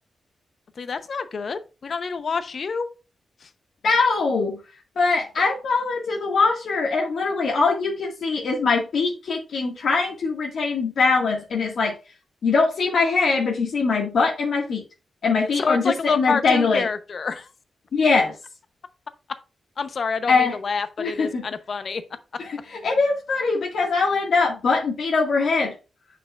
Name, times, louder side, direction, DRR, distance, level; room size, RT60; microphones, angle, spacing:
voice 1, 0.8-2.9 3.4-3.5 15.6-17.5 19.8-22.0, left 5 dB, 55° left, 0.7 m, -27 dB
voice 2, 3.8-4.6 4.9-11.9 12.4-14.8 15.2-16.8 17.9-18.3 20.3-20.5 21.0-21.4 22.4-25.7, left 4 dB, 75° left, 1.7 m, -22 dB
8.4 x 5.9 x 2.3 m
wide cardioid pair, 115°, 0 cm